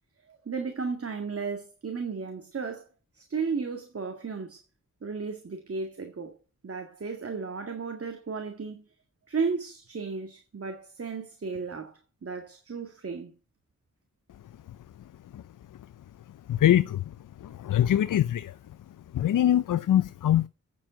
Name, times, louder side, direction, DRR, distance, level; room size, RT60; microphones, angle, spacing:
voice 1, 0.3-2.9 3.1-4.6 5.0-6.4 6.6-8.9 9.3-13.3, right 5 dB, 45° right, 2.0 m, -34 dB
voice 2, 16.5-17.0 17.4-18.6 19.1-20.5, left 11 dB, 75° left, 0.6 m, -23 dB
9.3 x 7.5 x 8.7 m
cardioid pair, 70°, 31 cm